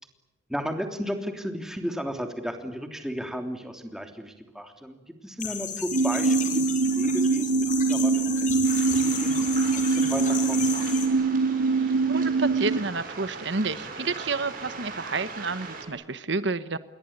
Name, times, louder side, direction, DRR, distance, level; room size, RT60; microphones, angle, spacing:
voice 1, 0.5-10.7, equal, 5° right, 5 dB, 3.2 m, -34 dB
sound 1, 5.4-11.1, left 8 dB, 40° left, 5.2 m, -34 dB
sound 2, 5.9-12.8, right 4 dB, 85° right, 2.5 m, -23 dB
Waves surf, 8.6-15.8, right 4 dB, 45° right, 7.6 m, -40 dB
voice 2, 11.8-16.8, right 3 dB, 65° right, 12 dB, 1.1 m, -30 dB
28.5 x 22.5 x 8.8 m, 0.99 s
head